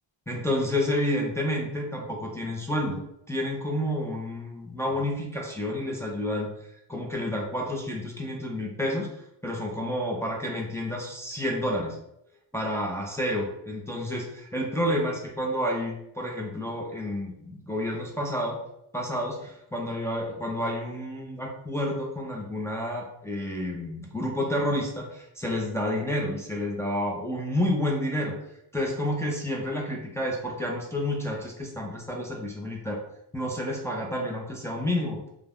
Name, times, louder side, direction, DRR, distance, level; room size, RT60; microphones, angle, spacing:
voice 1, 0.3-6.5 6.9-12.0 12.5-18.6 18.9-28.4 28.7-33.0 33.3-35.2, left 1 dB, 5° left, -2 dB, 0.6 m, -30 dB
2.4 x 2.2 x 3.4 m, 0.80 s
cardioid pair, 70°, 46 cm